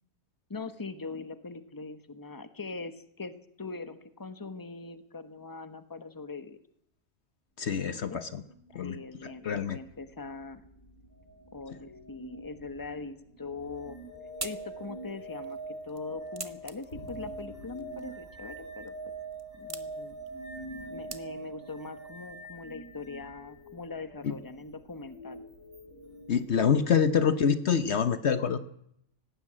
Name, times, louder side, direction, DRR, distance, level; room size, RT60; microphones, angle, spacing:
voice 1, 0.5-6.6 8.1-8.2 8.8-10.6 11.5-14.0 14.4-15.6 15.8-19.1 19.6-20.2 20.9-25.4, left 3 dB, 15° left, 10 dB, 1.2 m, -41 dB
voice 2, 7.6-8.4 8.7-9.8 26.3-28.6, left 7 dB, 60° left, 11 dB, 1.2 m, -26 dB
sound 1, 8.1-27.3, right 1 dB, 85° left, 5.7 m, -50 dB
sound 2, 13.6-23.4 25.7-25.8, right 2 dB, 70° right, 4.4 m, -43 dB
sound 3, 13.7-21.7, right 3 dB, 25° right, 1.1 m, -47 dB
18.5 x 16.0 x 8.7 m, 0.73 s
omnidirectional pair, 1.3 m